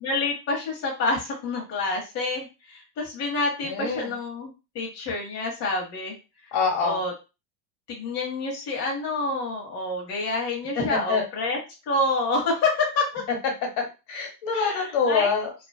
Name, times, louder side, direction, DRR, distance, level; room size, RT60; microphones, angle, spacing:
voice 1, 0.0-6.2 6.8-7.1 7.9-11.6 11.9-13.2 14.5-15.4, left 3 dB, 35° left, -3 dB, 0.9 m, -28 dB
voice 2, 3.6-4.1 6.5-7.0 10.7-11.2 13.8-15.5, left 5 dB, 60° left, 1 dB, 1.3 m, -25 dB
2.5 x 2.2 x 2.2 m, 0.28 s
supercardioid pair, 125°, 46 cm